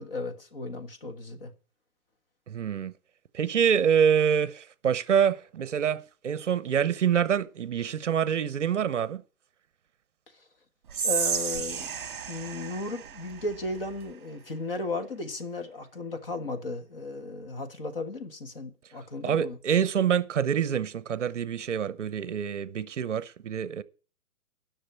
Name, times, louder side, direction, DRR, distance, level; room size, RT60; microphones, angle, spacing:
voice 1, 0.0-1.5 11.0-11.9 12.3-19.6, left 2 dB, 40° left, 1.5 m, -35 dB
voice 2, 2.5-2.9 3.3-9.2 19.2-23.8, right 8 dB, 55° right, 0.8 m, -26 dB
Whispering, 10.9-14.1, right 7 dB, 35° right, 1.8 m, -32 dB
10.0 x 6.3 x 8.1 m
hypercardioid pair, 175°, 44 cm